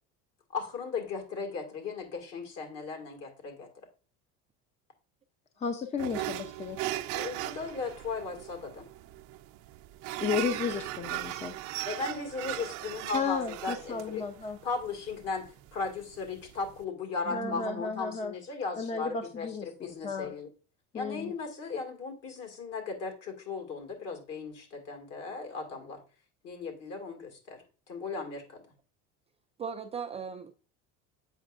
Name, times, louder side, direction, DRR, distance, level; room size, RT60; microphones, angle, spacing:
voice 1, 0.5-3.7 7.1-8.8 11.9-14.2 14.6-20.5 20.9-26.0 26.4-28.6, left 4 dB, 55° left, 2.0 m, -37 dB
voice 2, 5.6-6.8 10.2-11.5 13.1-14.6 17.3-18.3 18.8-19.7 20.0-20.3 20.9-21.3, left 5 dB, 20° left, 0.6 m, -33 dB
sound 1, 6.0-16.8, right 15 dB, 65° right, 0.6 m, -38 dB
voice 3, 17.2-17.8 21.2-21.4 29.6-30.5, right 6 dB, 20° right, 0.4 m, -39 dB
7.9 x 5.3 x 2.5 m
cardioid pair, 135°, 31 cm